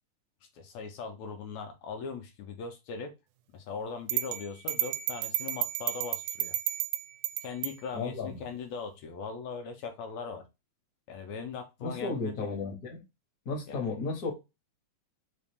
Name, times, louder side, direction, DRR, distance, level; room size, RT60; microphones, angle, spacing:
voice 1, 0.4-3.1 3.5-6.5 7.4-10.4 11.1-12.5 13.7-13.8, left 5 dB, 80° left, 1.6 m, -40 dB
sound 1, 4.1-7.8, right 13 dB, 85° right, 2.0 m, -32 dB
voice 2, 7.9-8.4 11.8-13.0 13.4-14.3, left 4 dB, 65° left, 0.9 m, -34 dB
4.8 x 2.6 x 3.3 m
omnidirectional pair, 3.6 m